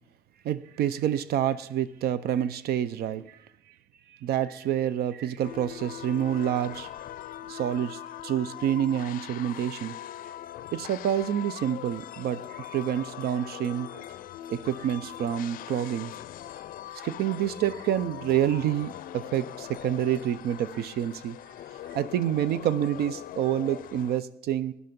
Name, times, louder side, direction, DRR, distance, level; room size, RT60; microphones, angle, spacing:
voice 1, 0.4-3.5 4.1-6.9 7.5-10.0 10.7-14.1 14.5-16.1 16.9-21.4 21.9-24.7, right 10 dB, 65° right, 16 dB, 0.5 m, -28 dB
sound 1, 5.4-24.2, left 12 dB, 55° left, 0.5 m, -41 dB
12.5 x 11.0 x 5.2 m, 0.78 s
cardioid pair, 110°, 17 cm